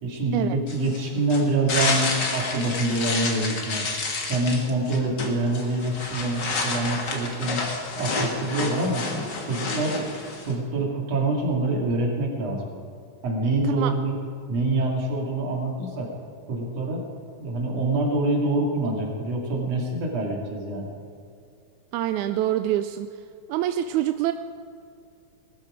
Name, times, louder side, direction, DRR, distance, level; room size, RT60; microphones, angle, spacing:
voice 1, 0.0-3.9 4.3-7.7 8.0-9.0 9.5-10.1 10.5-12.6 13.2-14.2 14.5-16.1 16.5-17.0 17.4-20.9, right 2 dB, 60° right, -1 dB, 3.6 m, -25 dB
sound 1, 0.7-10.5, left 3 dB, 40° left, 2.0 m, -30 dB
voice 2, 21.9-23.1 23.5-24.3, right 12 dB, 90° right, 9 dB, 2.0 m, -25 dB
19.5 x 13.0 x 5.0 m, 2.5 s
omnidirectional pair, 3.3 m